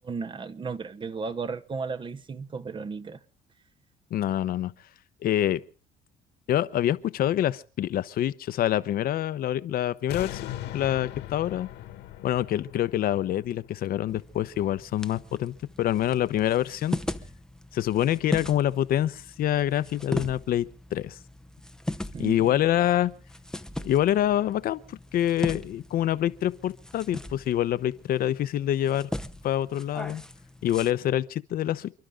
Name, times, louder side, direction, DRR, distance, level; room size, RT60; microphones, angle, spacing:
voice 1, 0.0-3.2 22.1-22.6, right 5 dB, 30° right, 1.0 m, -34 dB
voice 2, 4.1-4.7 5.2-5.6 6.5-11.7 12.2-17.0 17.7-20.6 20.9-21.2 22.2-23.1 23.8-29.1 29.4-30.2 30.6-31.9, left 12 dB, 60° left, 0.8 m, -26 dB
sound 1, 10.1-15.2 15.7-15.8, left 13 dB, 85° left, 1.9 m, -40 dB
sound 2, 14.1-30.9, left 1 dB, 5° left, 0.7 m, -39 dB
29.5 x 11.5 x 3.7 m
cardioid pair, 110°, 17 cm